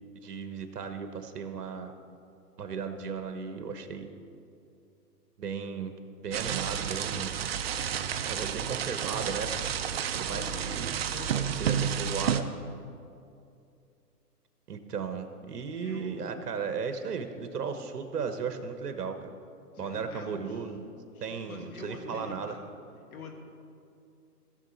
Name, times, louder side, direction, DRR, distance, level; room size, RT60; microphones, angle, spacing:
voice 1, 0.2-1.9 2.6-4.1 5.4-5.9 6.2-7.3 8.3-9.5 10.2-11.0 11.6-12.5 14.7-19.3 19.8-20.8 21.2-22.6, right 6 dB, 70° right, 8 dB, 1.2 m, -35 dB
sound 1, 6.3-12.4, right 8 dB, 40° right, 0.5 m, -31 dB
voice 2, 10.2-12.1 15.7-16.7 19.7-20.6 21.1-22.7 23.1-23.4, left 3 dB, 60° left, 2 dB, 2.1 m, -45 dB
16.0 x 6.5 x 4.1 m, 2.5 s
hypercardioid pair, 135°, 48 cm